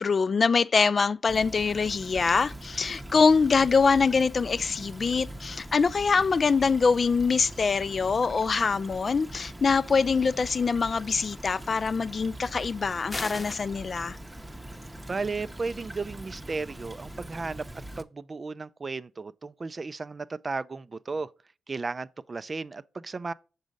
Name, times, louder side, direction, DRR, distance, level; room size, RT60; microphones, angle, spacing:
voice 1, 0.0-14.2, left 5 dB, 50° left, 0.3 m, -24 dB
Stream / Trickle dribble, 1.3-18.0, right 1 dB, 15° right, 0.7 m, -42 dB
sound 1, 13.1-13.7, left 2 dB, 30° left, 0.8 m, -35 dB
voice 2, 15.1-17.6 18.0-21.3 21.7-23.3, right 4 dB, 40° right, 0.3 m, -34 dB
6.2 x 4.0 x 5.1 m
supercardioid pair, 50°, 0 cm